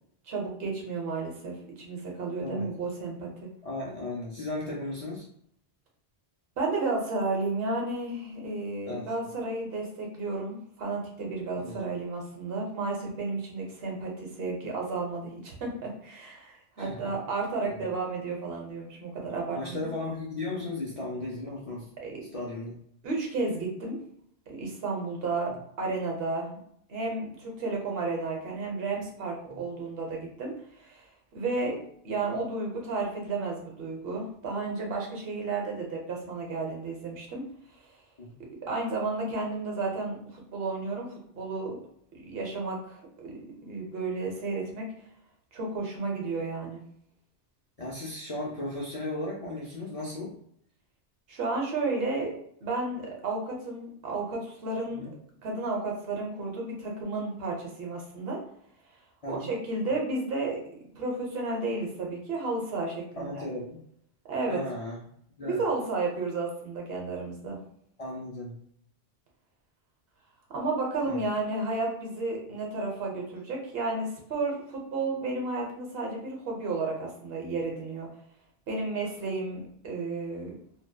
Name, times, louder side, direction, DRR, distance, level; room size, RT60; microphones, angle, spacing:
voice 1, 0.3-3.5 6.6-19.9 22.0-22.2 23.0-24.0 24.5-25.5 25.8-26.6 26.9-31.1 31.3-31.8 32.0-37.4 38.6-41.8 42.2-43.3 43.7-44.9 45.5-46.8 51.3-52.3 52.6-55.1 55.4-58.4 59.3-60.6 61.0-63.3 64.3-64.6 65.4-67.6 70.5-78.1 78.7-80.5, right 3 dB, 70° right, 0 dB, 0.9 m, -32 dB
voice 2, 2.4-2.7 3.6-5.3 8.9-9.1 11.6-11.8 16.8-17.1 17.8-17.9 19.5-21.9 22.3-22.8 29.5-29.6 38.2-38.3 47.8-50.3 54.9-55.1 59.2-59.5 63.2-63.8 64.5-65.0 65.4-65.6 68.0-68.6 71.0-71.2, left 2 dB, 50° left, -4 dB, 0.4 m, -36 dB
2.7 x 2.1 x 2.2 m, 0.68 s
omnidirectional pair, 1.1 m